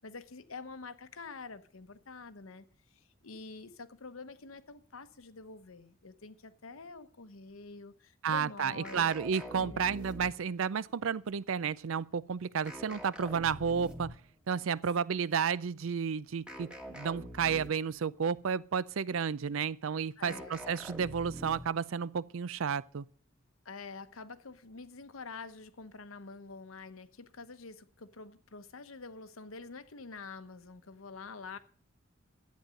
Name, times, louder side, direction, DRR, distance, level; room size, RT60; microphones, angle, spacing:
voice 1, 0.0-9.1 9.6-9.9 12.9-13.0 20.2-20.7 23.6-31.6, left 4 dB, 85° left, 1.0 m, -47 dB
voice 2, 8.2-14.1 14.5-23.1, right 6 dB, 80° right, 0.5 m, -32 dB
sound 1, 8.8-10.6 12.7-14.3 16.5-18.0 20.3-21.9, equal, 5° right, 1.2 m, -45 dB
11.5 x 8.8 x 6.4 m
head